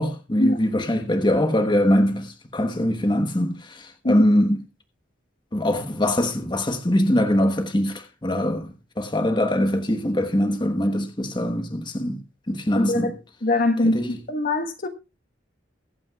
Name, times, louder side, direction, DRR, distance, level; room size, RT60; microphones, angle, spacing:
voice 1, 0.0-4.6 5.5-8.7 9.0-12.2 12.5-13.1 13.9-14.1, left 1 dB, 25° left, 1.2 m, -22 dB
voice 2, 12.7-13.1 13.4-14.9, left 2 dB, 45° left, 1.3 m, -23 dB
23.0 x 8.8 x 2.4 m
head